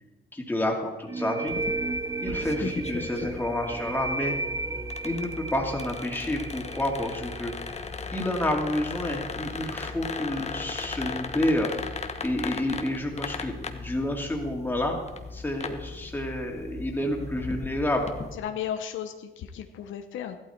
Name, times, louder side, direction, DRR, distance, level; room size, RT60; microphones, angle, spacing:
voice 1, 0.3-1.5 2.2-4.3 5.0-7.5 8.1-11.7 12.2-15.0 15.3-18.1, left 1 dB, 10° left, 0 dB, 2.6 m, -29 dB
sound 1, 1.1-8.5, right 3 dB, 15° right, 0.4 m, -34 dB
sound 2, 1.5-18.4, left 4 dB, 35° left, 1.1 m, -37 dB
voice 2, 10.4-10.7 18.4-20.4, left 9 dB, 75° left, 7 dB, 0.9 m, -35 dB
14.5 x 12.0 x 4.5 m, 1.1 s
cardioid pair, 90°, 20 cm